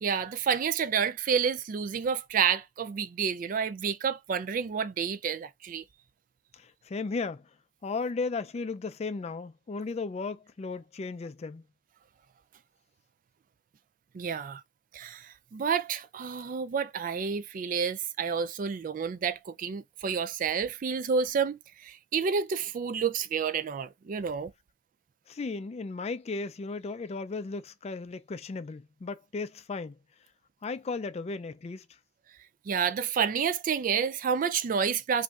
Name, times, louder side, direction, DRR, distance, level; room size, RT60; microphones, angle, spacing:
voice 1, 0.0-5.8 14.1-14.6 14.9-24.5 32.7-35.2, right 6 dB, 45° right, 0.3 m, -29 dB
voice 2, 6.5-7.4 7.8-11.6 25.3-30.0 30.6-31.8, left 4 dB, 35° left, 0.3 m, -35 dB
5.2 x 2.6 x 2.4 m
head